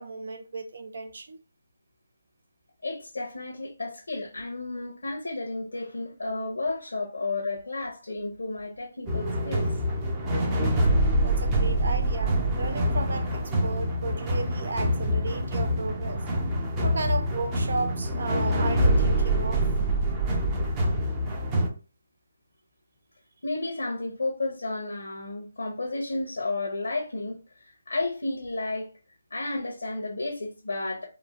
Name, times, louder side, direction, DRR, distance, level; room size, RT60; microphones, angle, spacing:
voice 1, 0.0-1.4 11.2-16.2 16.8-19.6, right 3 dB, 65° right, 0.5 m, -34 dB
voice 2, 2.8-9.7 10.0-10.2 10.8-11.1 23.4-28.9 29.3-31.1, left 2 dB, 80° left, 0.7 m, -32 dB
sound 1, 9.1-21.7, right 1 dB, 20° right, 0.6 m, -25 dB
3.0 x 2.0 x 2.5 m
figure-of-eight pair, 155°, 0 cm